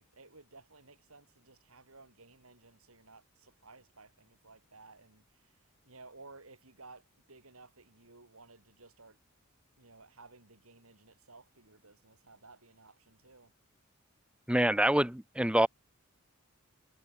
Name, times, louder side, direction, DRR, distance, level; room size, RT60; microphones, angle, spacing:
voice 1, 0.0-9.2 9.8-13.5, right 3 dB, 80° right, 6.7 m, -56 dB
voice 2, 14.5-15.7, right 1 dB, 5° right, 0.8 m, -26 dB
head